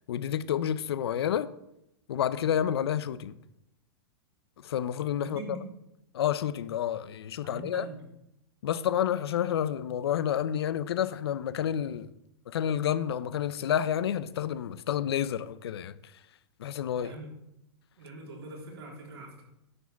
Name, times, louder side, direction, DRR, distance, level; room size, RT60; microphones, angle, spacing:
voice 1, 0.1-1.5 2.1-3.4 4.6-5.4 6.1-7.8 8.6-12.1 12.5-15.9 16.6-17.1, left 10 dB, 85° left, 0.6 m, -29 dB
voice 2, 5.2-5.6 7.4-8.0 17.0-17.3 18.0-19.4, right 2 dB, 90° right, 3.6 m, -42 dB
9.9 x 5.0 x 7.0 m
hypercardioid pair, 140°, 13 cm